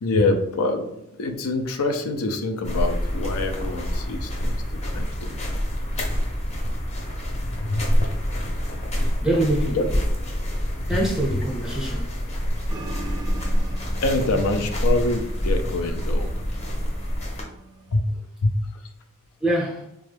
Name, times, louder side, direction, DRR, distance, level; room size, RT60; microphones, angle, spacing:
voice 1, 0.0-0.9 1.2-5.3 7.6-8.1 9.8-9.9 14.0-16.3 17.9-18.1 18.4-18.6, left 2 dB, 75° left, 0.5 m, -25 dB
sound 1, 2.6-17.4, equal, 30° left, 0.7 m, -26 dB
voice 2, 9.2-9.8 10.9-12.1 19.4-19.8, right 1 dB, 5° right, 0.7 m, -24 dB
sound 2, 12.7-18.0, right 3 dB, 20° right, 0.3 m, -41 dB
4.1 x 2.3 x 3.3 m
head